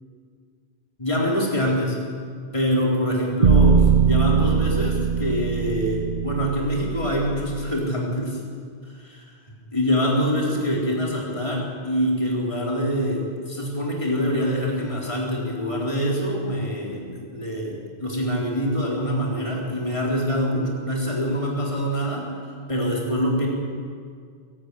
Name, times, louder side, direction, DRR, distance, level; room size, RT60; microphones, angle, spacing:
voice 1, 1.0-2.0 2.5-8.4 8.8-9.4 9.7-22.3 22.7-23.5, equal, 30° left, -3 dB, 4.4 m, -25 dB
sound 1, 3.4-7.6, right 6 dB, 50° right, 0.8 m, -20 dB
26.0 x 15.5 x 10.0 m, 2.1 s
omnidirectional pair, 1.1 m